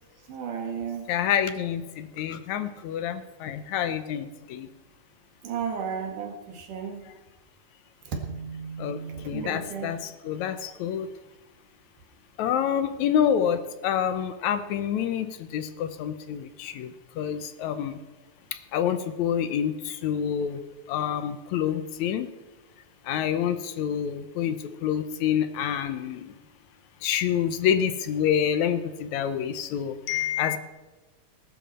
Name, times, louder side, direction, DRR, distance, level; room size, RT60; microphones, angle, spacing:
voice 1, 0.3-1.1 5.4-7.0 8.0-9.9, right 6 dB, 80° right, 4 dB, 3.4 m, -34 dB
voice 2, 1.1-4.7 8.8-9.0 9.3-11.1 12.4-18.0 18.5-20.6 20.9-22.3 23.0-26.3 27.0-30.6, left 9 dB, 75° left, 10 dB, 2.0 m, -27 dB
20.0 x 11.5 x 4.3 m, 1.2 s
omnidirectional pair, 3.6 m